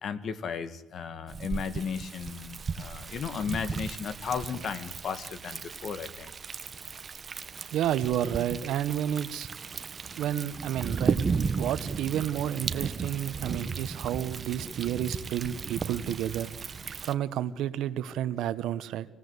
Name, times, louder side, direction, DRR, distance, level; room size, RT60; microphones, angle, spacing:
voice 1, 0.0-6.3, left 6 dB, 60° left, 12 dB, 2.0 m, -35 dB
Thunder, 1.3-17.1, right 5 dB, 40° right, 1.1 m, -35 dB
voice 2, 7.7-9.5 10.2-19.1, right 11 dB, 85° right, 14 dB, 1.1 m, -31 dB
27.0 x 17.5 x 8.1 m, 0.93 s
cardioid pair, 90°, 0 cm